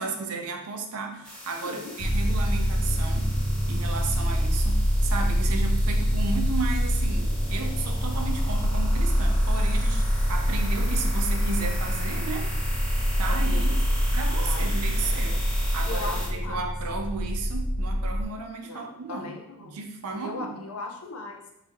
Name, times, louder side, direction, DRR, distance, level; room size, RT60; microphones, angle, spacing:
voice 1, 0.0-3.3 3.7-12.5 13.2-13.7 14.1-15.4 15.7-19.3 19.6-20.6, right 4 dB, 85° right, 4 dB, 0.6 m, -34 dB
sound 1, 1.2-16.3, left 1 dB, 5° left, 0.8 m, -39 dB
voice 2, 1.6-2.0 13.3-13.7 13.9-14.0 14.4-15.2 15.8-16.7 18.6-19.8 20.2-21.5, left 3 dB, 75° left, 2 dB, 0.7 m, -38 dB
sound 2, 2.0-18.2, equal, 35° left, 0.6 m, -25 dB
3.9 x 2.8 x 2.9 m, 0.81 s
head